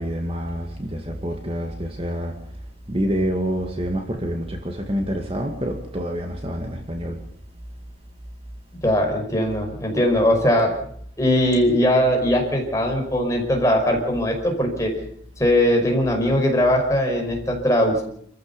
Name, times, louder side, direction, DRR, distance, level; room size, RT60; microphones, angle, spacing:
voice 1, 0.0-2.4 2.9-7.2, equal, 30° right, 2.3 m, -27 dB
voice 2, 8.8-10.7 11.2-14.9 15.4-18.0, left 1 dB, 15° left, 5.4 m, -20 dB
27.5 x 15.0 x 7.1 m
head